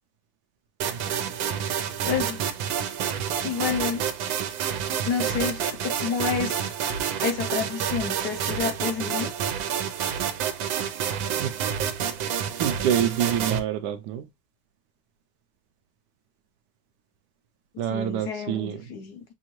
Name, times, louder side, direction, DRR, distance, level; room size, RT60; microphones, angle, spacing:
sound 1, 0.8-13.6, right 8 dB, 90° right, 1.4 m, -28 dB
voice 1, 2.1-2.4 3.4-4.1 5.1-6.6 7.2-9.3 17.9-19.2, left 7 dB, 70° left, 1.1 m, -29 dB
voice 2, 12.6-14.2 17.8-18.9, right 9 dB, 75° right, 1.1 m, -27 dB
6.2 x 2.5 x 3.0 m
omnidirectional pair, 2.0 m